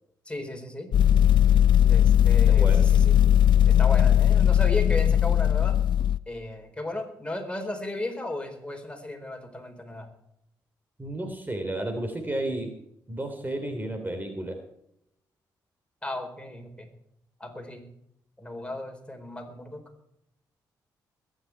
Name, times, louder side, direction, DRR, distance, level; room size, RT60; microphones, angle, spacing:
voice 1, 0.3-0.9 1.8-3.2 3.7-5.8 6.3-10.1 16.0-16.9 17.4-17.8 18.4-19.8, left 1 dB, 15° left, 4 dB, 4.3 m, -35 dB
sound 1, 0.9-6.2, left 10 dB, 70° left, 0.5 m, -19 dB
voice 2, 2.5-2.8 11.0-12.7 13.1-14.6, right 1 dB, 25° right, 5 dB, 3.3 m, -32 dB
21.0 x 10.5 x 4.6 m, 0.76 s
supercardioid pair, 55°, 8 cm